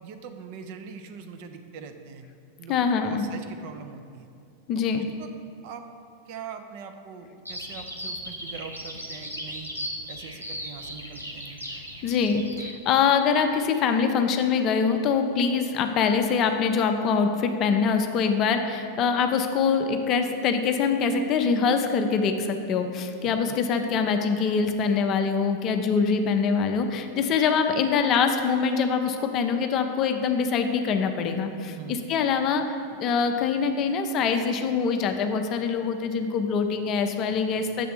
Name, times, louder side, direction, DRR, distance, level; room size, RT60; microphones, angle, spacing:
voice 1, 0.0-2.3 2.6-4.3 5.2-5.3 5.6-5.8 6.3-9.7 10.1-11.6 23.2-23.6 31.8-32.0, right 6 dB, 45° right, 6 dB, 0.5 m, -42 dB
voice 2, 2.7-3.2 4.7-5.1 12.0-32.6 33.0-37.9, left 5 dB, 35° left, 6 dB, 0.5 m, -24 dB
Bird vocalization bird call bird song, 7.5-12.7, equal, 90° right, 0.7 m, -37 dB
7.5 x 3.3 x 5.7 m, 2.5 s
figure-of-eight pair, 90°, 0 cm